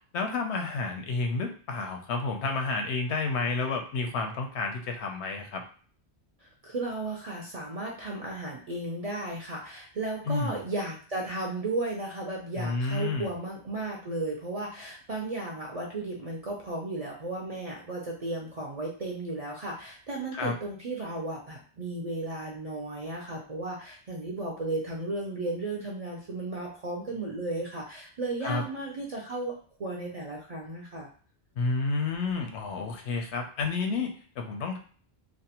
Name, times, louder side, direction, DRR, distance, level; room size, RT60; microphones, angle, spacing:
voice 1, 0.1-5.6 10.3-10.6 12.5-13.3 20.3-20.6 28.4-28.6 31.6-34.8, left 3 dB, 85° left, 3 dB, 0.9 m, -30 dB
voice 2, 6.4-29.5 29.8-31.1, right 2 dB, 50° right, -2 dB, 0.4 m, -34 dB
2.6 x 2.1 x 2.8 m, 0.43 s
omnidirectional pair, 1.1 m